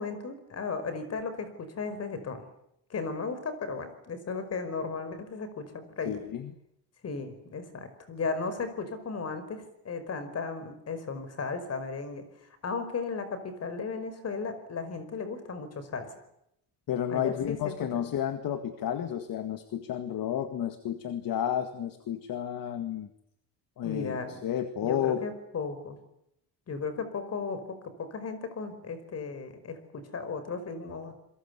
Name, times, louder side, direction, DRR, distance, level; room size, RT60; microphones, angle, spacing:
voice 1, 0.0-2.4 2.9-6.2 7.0-12.2 12.6-16.1 17.1-17.6 17.9-18.0 23.8-24.4 24.8-26.0 26.7-31.1, left 4 dB, 35° left, 11 dB, 5.1 m, -35 dB
voice 2, 6.1-6.5 16.9-23.1 23.8-25.3, left 10 dB, 50° left, 9 dB, 2.0 m, -31 dB
28.0 x 22.5 x 8.3 m, 0.79 s
cardioid pair, 155°, 42 cm